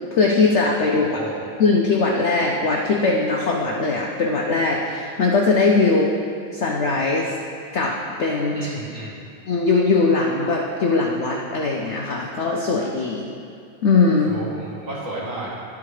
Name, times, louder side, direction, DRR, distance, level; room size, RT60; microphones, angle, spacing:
voice 1, 0.1-1.1 1.6-6.1 6.5-7.3 7.7-8.6 9.5-13.3 13.8-14.4, left 3 dB, 75° left, -1 dB, 0.6 m, -20 dB
voice 2, 1.0-1.4 8.5-9.2 14.3-15.5, right 2 dB, 45° right, -6 dB, 1.9 m, -32 dB
11.5 x 4.8 x 4.8 m, 2.4 s
omnidirectional pair, 2.1 m